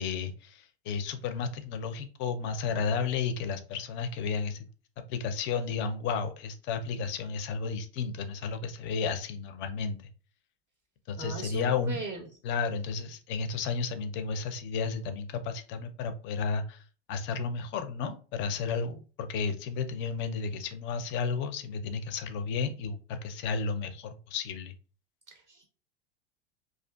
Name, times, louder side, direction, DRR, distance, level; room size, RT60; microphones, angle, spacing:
voice 1, 0.0-4.7 5.1-10.0 11.1-12.0 12.4-16.8 17.1-24.7, left 5 dB, 35° left, 9 dB, 0.5 m, -32 dB
voice 2, 11.2-12.3 25.3-25.6, right 4 dB, 25° right, 3 dB, 0.5 m, -39 dB
2.5 x 2.3 x 2.3 m, 0.36 s
hypercardioid pair, 90°, 32 cm